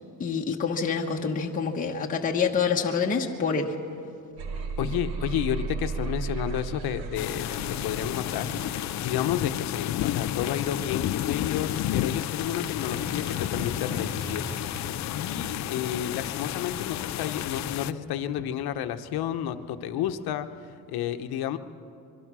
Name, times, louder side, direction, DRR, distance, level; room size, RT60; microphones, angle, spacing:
voice 1, 0.2-3.7, left 5 dB, 20° left, 0 dB, 1.1 m, -27 dB
sound 1, 4.4-9.5, right 5 dB, 85° right, 2.3 m, -35 dB
voice 2, 4.8-14.5 14.8-20.5 20.9-21.6, left 10 dB, 70° left, 9 dB, 1.1 m, -31 dB
Motorcycle / Traffic noise roadway noise, 6.4-20.5, right 1 dB, 30° right, 6.4 m, -45 dB
sound 2, 7.1-17.9, left 13 dB, 45° left, 0.5 m, -31 dB
25.0 x 22.5 x 6.2 m, 2.6 s
cardioid pair, 170°, 38 cm